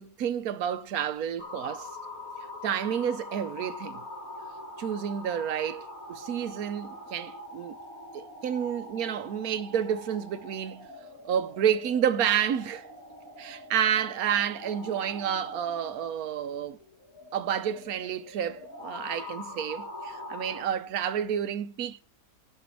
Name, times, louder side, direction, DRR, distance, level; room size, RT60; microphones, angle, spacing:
voice 1, 0.0-1.9 2.6-4.0 4.8-7.7 8.1-10.9 11.2-12.9 13.4-16.8 17.3-22.0, right 9 dB, 75° right, 1.2 m, -30 dB
sound 1, 1.4-20.6, left 1 dB, 65° left, 2.9 m, -43 dB
11.0 x 5.1 x 8.3 m
omnidirectional pair, 1.6 m